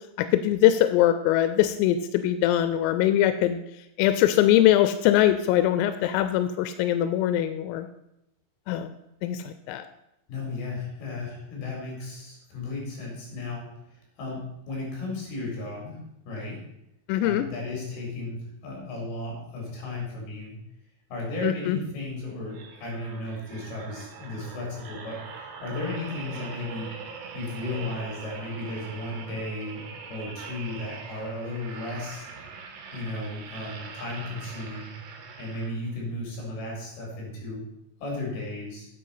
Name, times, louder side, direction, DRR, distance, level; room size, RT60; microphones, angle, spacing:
voice 1, 0.2-3.6 4.0-7.9 8.7-8.9 9.2-9.9 17.1-17.4 21.4-21.8, left 12 dB, 90° left, 10 dB, 3.3 m, -22 dB
voice 2, 10.3-13.7 14.2-16.0 16.3-16.6 17.2-20.6 21.1-25.2 25.6-26.9 27.3-29.8 30.1-32.3 32.9-34.9 35.4-37.6 38.0-38.9, left 2 dB, 50° left, -2 dB, 5.7 m, -34 dB
sound 1, 22.5-36.1 36.6-36.8, right 5 dB, 85° right, 4.0 m, -42 dB
9.2 x 8.0 x 5.7 m, 0.84 s
omnidirectional pair, 5.9 m